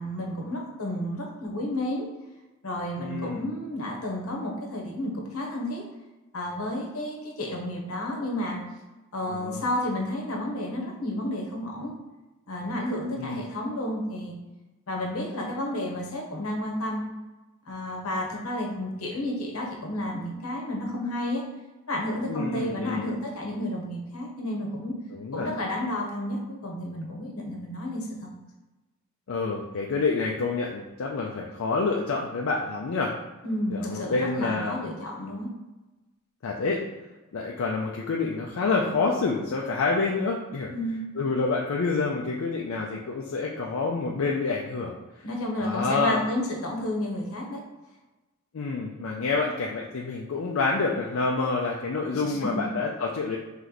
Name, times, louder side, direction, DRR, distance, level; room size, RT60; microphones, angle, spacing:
voice 1, 0.0-2.1 2.6-5.8 6.3-8.6 9.1-11.9 12.5-14.3 14.9-17.0 17.6-21.4 21.9-24.9 25.3-28.3 33.4-35.5 40.7-41.1 45.2-47.6 52.1-52.6, left 1 dB, 85° left, 0 dB, 0.9 m, -31 dB
voice 2, 3.0-3.5 9.3-9.6 13.2-13.4 22.3-23.1 25.1-25.5 29.3-33.1 33.7-34.8 36.4-36.8 37.3-40.7 41.2-45.0 45.6-46.2 48.5-53.4, left 4 dB, 65° left, -1 dB, 0.4 m, -28 dB
3.1 x 3.0 x 3.9 m, 1.1 s
head